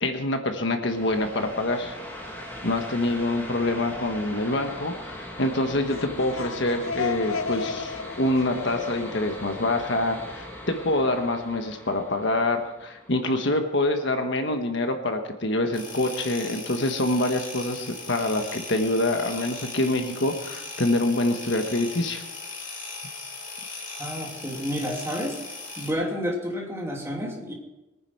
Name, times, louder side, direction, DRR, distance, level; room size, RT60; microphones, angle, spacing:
voice 1, 0.0-1.9 2.6-22.2, left 2 dB, 60° left, 5 dB, 1.4 m, -26 dB
sound 1, 0.9-14.2, left 1 dB, 10° left, 2.1 m, -40 dB
sound 2, 5.7-10.4, left 5 dB, 90° left, 0.8 m, -34 dB
sound 3, 15.7-25.9, left 3 dB, 40° left, 2.9 m, -38 dB
voice 2, 24.0-25.4 25.8-27.5, equal, 15° right, -1 dB, 2.8 m, -30 dB
22.5 x 9.8 x 4.6 m, 1.0 s
head